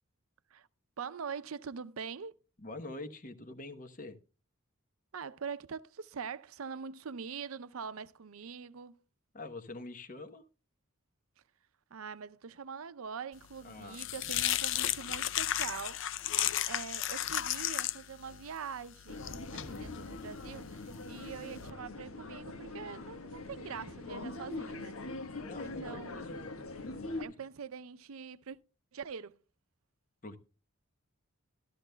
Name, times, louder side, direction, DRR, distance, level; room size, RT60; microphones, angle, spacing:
voice 1, 1.0-2.3 5.1-9.0 11.9-16.0 16.3-16.4 16.7-25.0 25.6-26.4 27.2-28.6 28.9-29.4, right 6 dB, 85° right, 0.6 m, -43 dB
voice 2, 2.6-4.2 9.3-10.4 13.6-14.1 19.5-19.8 25.4-26.5 30.2-30.4, left 2 dB, 40° left, 1.0 m, -45 dB
sound 1, 13.4-21.7, left 12 dB, 60° left, 0.5 m, -35 dB
sound 2, 19.1-27.2, left 2 dB, 85° left, 1.2 m, -42 dB
13.5 x 13.0 x 2.2 m
head